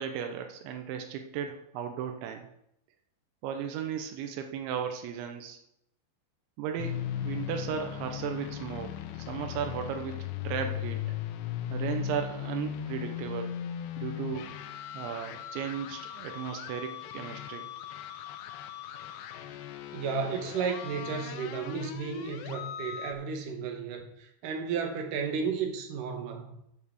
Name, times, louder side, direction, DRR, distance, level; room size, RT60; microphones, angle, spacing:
voice 1, 0.0-2.5 3.4-5.6 6.6-11.1 11.7-13.6 14.0-14.5 14.9-17.7, right 8 dB, 85° right, 3.3 m, -36 dB
sound 1, 6.8-23.1, left 11 dB, 80° left, 2.8 m, -38 dB
voice 2, 19.9-26.6, right 6 dB, 65° right, 2.3 m, -33 dB
8.2 x 7.3 x 6.9 m
omnidirectional pair, 5.1 m